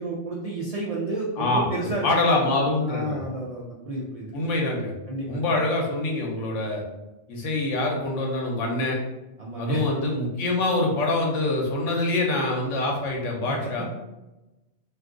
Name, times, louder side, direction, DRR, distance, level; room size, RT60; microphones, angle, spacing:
voice 1, 0.0-2.4 2.8-4.4 5.1-5.5 9.4-9.8 13.8-13.9, right 1 dB, 70° right, -5 dB, 0.3 m, -31 dB
voice 2, 1.4-1.7 2.0-3.3 4.3-4.9 5.3-6.8 7.3-9.0 9.6-13.8, left 2 dB, 80° left, -1 dB, 1.1 m, -25 dB
2.5 x 2.3 x 3.6 m, 1.0 s
omnidirectional pair, 1.2 m